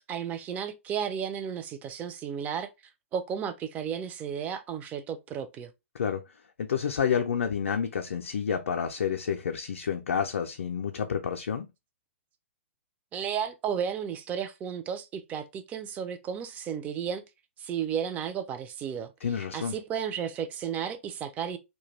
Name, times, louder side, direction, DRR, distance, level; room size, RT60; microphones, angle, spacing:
voice 1, 0.0-2.7 3.1-5.7 13.1-17.2 17.6-19.1 19.5-21.6, right 8 dB, 20° right, 0.3 m, -33 dB
voice 2, 6.6-11.7 19.2-19.7, left 7 dB, 65° left, 0.3 m, -29 dB
2.2 x 2.2 x 3.0 m
figure-of-eight pair, 110°, 7 cm